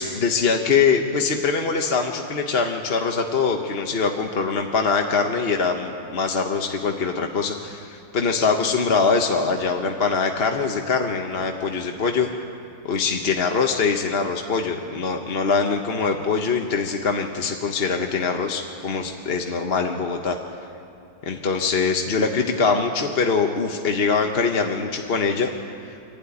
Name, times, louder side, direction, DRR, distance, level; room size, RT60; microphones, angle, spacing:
voice 1, 0.0-12.3 12.8-20.4 21.2-25.5 25.8-25.9, left 5 dB, 40° left, 3 dB, 1.1 m, -23 dB
25.5 x 12.5 x 9.7 m, 2.8 s
omnidirectional pair, 1.9 m